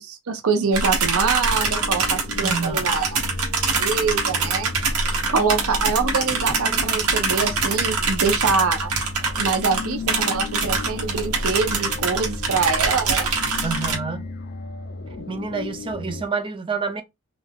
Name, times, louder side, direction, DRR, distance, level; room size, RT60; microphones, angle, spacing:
voice 1, 0.0-3.1 3.8-4.7 5.3-8.9 9.4-13.3 13.5-13.7, right 4 dB, 75° right, 0.6 m, -24 dB
sound 1, 0.7-14.0, right 4 dB, 90° right, 1.0 m, -24 dB
sound 2, 1.4-16.3, left 3 dB, 45° left, 0.4 m, -36 dB
voice 2, 2.4-2.8 13.6-14.3 15.1-17.0, right 5 dB, 25° right, 0.4 m, -28 dB
2.4 x 2.3 x 3.4 m
head